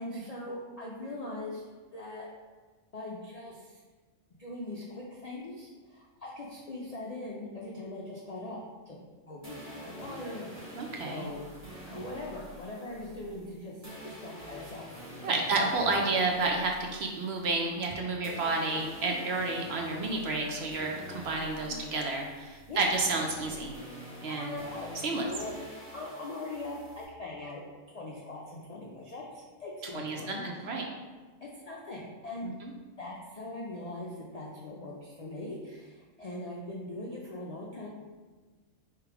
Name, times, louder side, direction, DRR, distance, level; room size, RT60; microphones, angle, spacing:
voice 1, 0.0-1.6 1.9-2.3 2.9-3.8 4.4-8.6 8.9-9.0 9.3-10.8 11.0-11.5 11.9-13.8 14.0-16.0 21.7-21.8 22.7-22.9 24.3-25.5 25.9-27.6 27.9-30.6 31.4-32.5 33.0-37.9, left 2 dB, 55° left, -4 dB, 0.4 m, -41 dB
sound 1, 9.4-17.9 18.2-27.0, equal, 30° right, 1.2 m, -47 dB
voice 2, 10.8-11.3 15.2-23.8 24.2-24.6 25.0-25.3 29.9-30.8 32.4-32.5, right 3 dB, 65° right, 1 dB, 0.8 m, -30 dB
3.4 x 3.3 x 4.6 m, 1.4 s
omnidirectional pair, 1.4 m